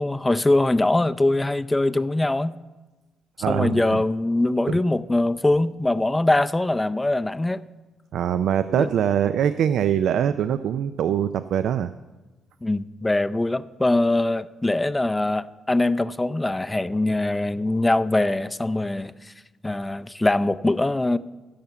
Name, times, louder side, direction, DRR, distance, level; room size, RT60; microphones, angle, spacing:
voice 1, 0.0-2.6 3.5-7.6 8.8-8.9 12.6-19.1 19.6-21.2, left 2 dB, 15° left, 0.4 m, -22 dB
voice 2, 3.4-4.0 4.7-4.8 8.1-11.9, right 9 dB, 75° right, 0.4 m, -23 dB
15.5 x 5.7 x 7.0 m
cardioid pair, 90°, 0 cm